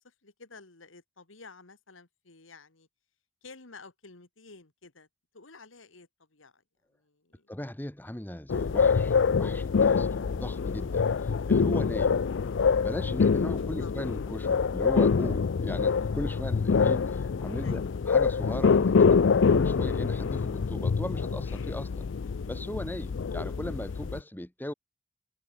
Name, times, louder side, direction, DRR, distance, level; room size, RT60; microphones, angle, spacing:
voice 1, 0.0-2.9 3.4-5.1 5.3-6.6 6.9-7.5 13.8-13.9 17.6-18.0, left 4 dB, 85° left, 2.1 m, -52 dB
voice 2, 7.5-12.2 12.8-22.1 22.5-24.7, left 1 dB, 10° left, 0.9 m, -38 dB
sound 1, 8.5-24.2, left 5 dB, 70° left, 0.4 m, -25 dB
head